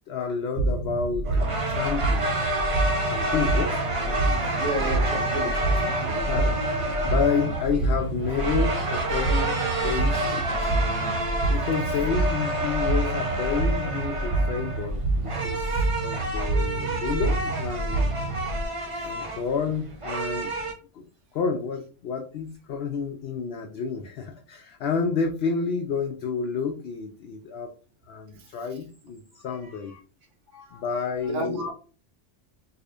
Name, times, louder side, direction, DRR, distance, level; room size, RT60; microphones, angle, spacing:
voice 1, 0.1-2.3 3.0-4.4 6.0-9.5 9.8-10.7 11.5-15.7 16.0-18.1 19.0-20.5 20.9-21.1 21.3-27.7 28.1-29.9 30.7-31.7, left 5 dB, 65° left, 4 dB, 0.7 m, -30 dB
sound 1, 0.6-18.6, right 2 dB, 85° right, 1.0 m, -27 dB
sound 2, 1.3-20.7, right 1 dB, 30° right, 0.7 m, -29 dB
voice 2, 4.6-5.9 30.5-30.8 31.3-31.7, right 1 dB, 65° right, -1 dB, 1.2 m, -32 dB
4.9 x 2.5 x 2.4 m, 0.38 s
omnidirectional pair, 1.3 m